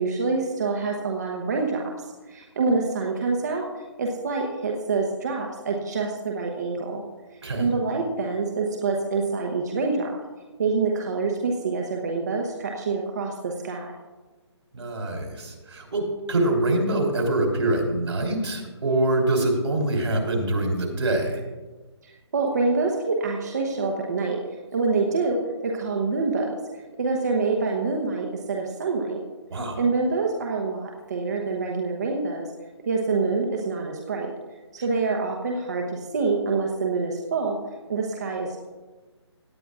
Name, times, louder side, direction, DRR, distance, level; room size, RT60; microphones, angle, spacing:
voice 1, 0.0-1.9 2.3-3.7 4.0-7.0 7.6-10.1 10.6-13.9 22.0-24.4 24.7-26.5 27.0-29.2 29.8-32.5 32.9-34.3 34.7-37.6 37.9-38.6, right 4 dB, 35° right, 0 dB, 1.0 m, -26 dB
voice 2, 14.7-21.4 29.5-29.8, right 1 dB, 70° right, 2 dB, 3.4 m, -24 dB
17.5 x 9.9 x 2.5 m, 1.3 s
hypercardioid pair, 170°, 15 cm